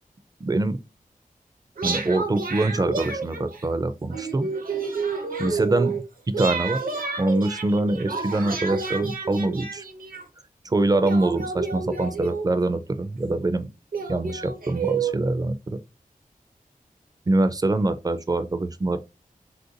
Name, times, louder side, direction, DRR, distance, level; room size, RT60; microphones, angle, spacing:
voice 1, 0.4-0.8 1.8-4.5 5.4-6.0 6.4-6.8 7.2-9.8 10.6-13.7 14.1-15.8 17.3-19.0, right 2 dB, 25° right, 0.4 m, -24 dB
sound 1, 1.8-3.7 4.1-6.0 6.3-10.2 11.0-12.7 13.4-13.5 13.9-15.1, right 4 dB, 75° right, 0.7 m, -30 dB
3.3 x 2.5 x 2.7 m
wide cardioid pair, 75°, 15 cm